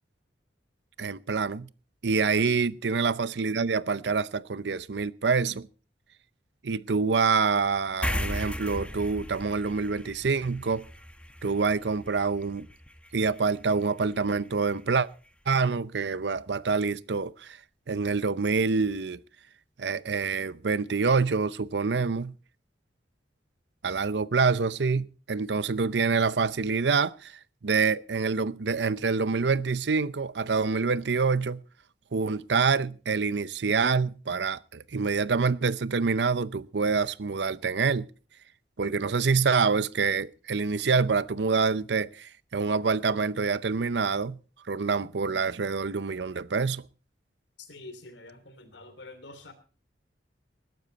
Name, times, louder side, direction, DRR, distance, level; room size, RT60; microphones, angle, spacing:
voice 1, 1.0-1.7 2.0-5.7 6.6-10.8 11.4-12.7 13.1-15.1 15.5-17.6 17.9-19.2 19.8-22.3 23.8-27.3 27.6-31.6 32.1-38.1 38.8-44.4 44.7-46.8, right 4 dB, 70° right, 0.6 m, -26 dB
sound 1, 8.0-14.8, left 1 dB, 5° left, 1.2 m, -37 dB
voice 2, 47.7-49.5, left 2 dB, 85° left, 3.0 m, -46 dB
20.0 x 12.0 x 4.1 m
head